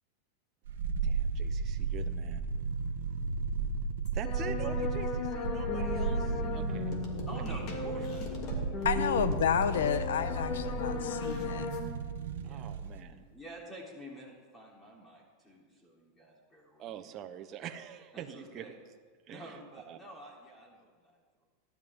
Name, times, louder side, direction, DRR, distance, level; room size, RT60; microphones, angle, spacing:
sound 1, 0.7-13.0 13.3-13.4, right 5 dB, 80° right, 0.9 m, -35 dB
voice 1, 1.0-2.5 4.1-6.9 7.9-8.1 12.4-13.2 16.8-18.7 19.3-19.6 19.9-20.0, right 10 dB, 35° right, 7 dB, 0.9 m, -44 dB
sound 2, 4.1-11.8, left 3 dB, 50° left, 2.7 m, -35 dB
voice 2, 7.3-9.3 12.4-17.1 18.1-18.7 19.3-21.4, right 1 dB, 10° left, -3 dB, 3.4 m, -49 dB
voice 3, 8.8-11.7, left 8 dB, 85° left, 12 dB, 0.9 m, -30 dB
18.0 x 12.0 x 3.7 m, 1.5 s
supercardioid pair, 130°, 0 cm